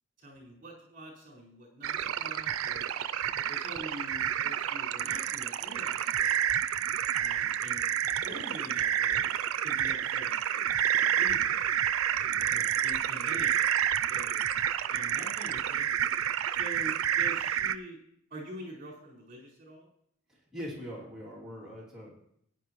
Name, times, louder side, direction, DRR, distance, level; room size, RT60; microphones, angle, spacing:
voice 1, 0.2-2.9 3.3-6.4 7.1-9.3 9.6-10.7 11.0-11.7 12.1-12.5 12.8-14.4 14.9-16.0 16.5-18.0 18.3-19.9, right 1 dB, 40° right, -4 dB, 4.5 m, -46 dB
sound 1, 1.8-17.7, right 10 dB, 85° right, 0.4 m, -29 dB
voice 2, 20.3-22.2, equal, 5° right, -7 dB, 2.7 m, -42 dB
15.0 x 9.9 x 3.0 m, 0.71 s
head